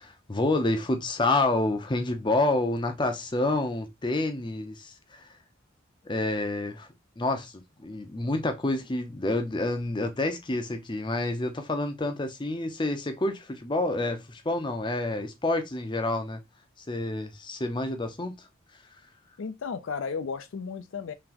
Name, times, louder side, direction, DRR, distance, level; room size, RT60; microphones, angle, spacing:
voice 1, 0.0-5.3 6.0-6.9 7.2-16.4 16.9-18.3, left 2 dB, 25° left, 0.6 m, -28 dB
voice 2, 19.4-21.1, left 5 dB, 70° left, 0.4 m, -34 dB
3.9 x 2.9 x 2.9 m
head